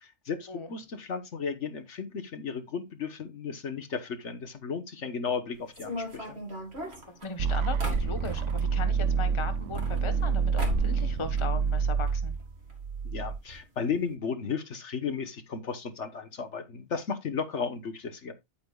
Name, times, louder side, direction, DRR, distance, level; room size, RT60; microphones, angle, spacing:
voice 1, 0.0-6.4 13.0-18.3, left 6 dB, 70° left, 1.5 m, -34 dB
sound 1, 5.7-8.7 9.5-10.3 10.6-11.0 11.3-12.1 12.4-12.5 12.7-12.8 13.5-13.6 13.9-14.1, equal, 60° right, 2.9 m, -36 dB
voice 2, 7.1-12.3, left 5 dB, 25° left, 1.1 m, -38 dB
sound 2, 7.4-13.4, right 6 dB, 75° right, 0.9 m, -28 dB
9.9 x 8.7 x 2.3 m
omnidirectional pair, 1.3 m